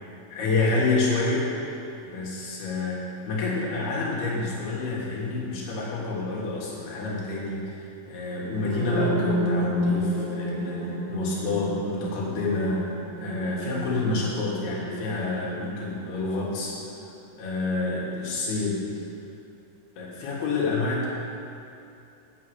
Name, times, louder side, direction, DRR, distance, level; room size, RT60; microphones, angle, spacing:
voice 1, 0.3-1.5 2.0-16.8 17.4-18.8 20.0-21.1, left 3 dB, 90° left, -5 dB, 3.6 m, -28 dB
sound 1, 8.6-16.4, equal, 75° right, 2.6 m, -30 dB
7.4 x 7.2 x 8.0 m, 2.7 s
omnidirectional pair, 4.3 m